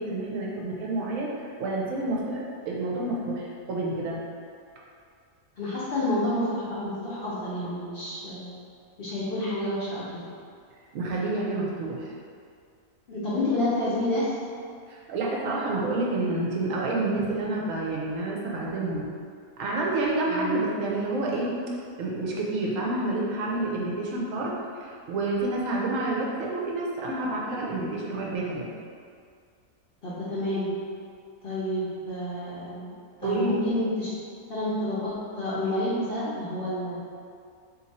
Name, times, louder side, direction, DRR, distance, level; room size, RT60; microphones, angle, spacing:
voice 1, 0.0-4.2 10.9-12.1 14.9-19.0 19.6-21.6 22.0-24.5 24.8-28.7 33.2-33.5, right 2 dB, 65° right, -3 dB, 0.9 m, -29 dB
voice 2, 5.6-8.5 9.0-10.2 13.1-14.3 20.2-20.6 30.0-30.7 31.4-32.9 33.2-34.1 34.5-37.0, left 1 dB, 50° left, -9 dB, 0.7 m, -29 dB
2.7 x 2.6 x 4.1 m, 2.2 s
omnidirectional pair, 1.6 m